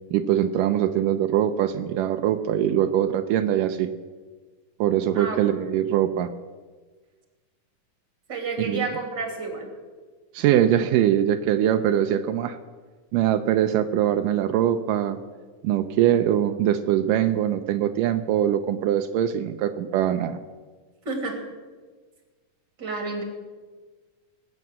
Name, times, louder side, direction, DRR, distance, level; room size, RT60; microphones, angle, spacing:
voice 1, 0.1-3.9 4.8-6.3 8.6-8.9 10.3-12.6 13.1-15.2 15.6-20.4, right 11 dB, 85° right, 8 dB, 2.3 m, -22 dB
voice 2, 8.3-9.7 21.0-21.4 22.8-23.2, right 3 dB, 35° right, 2 dB, 3.2 m, -30 dB
20.0 x 9.0 x 7.4 m, 1.4 s
omnidirectional pair, 3.8 m